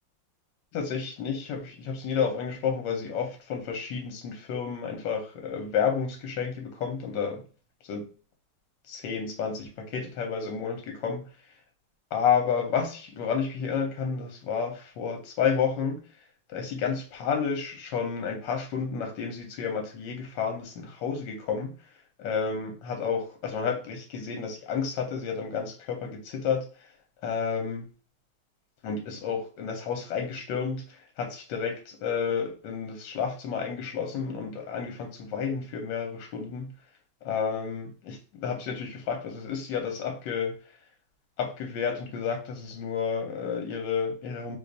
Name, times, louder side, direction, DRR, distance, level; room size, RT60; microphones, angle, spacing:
voice 1, 0.7-7.4 7.9-8.1 8.9-11.3 12.1-16.0 16.5-21.7 22.2-26.7 27.2-27.9 28.8-36.7 37.2-40.5 41.4-44.6, left 6 dB, 65° left, 1.5 m, -31 dB
3.4 x 2.5 x 3.9 m
omnidirectional pair, 2.2 m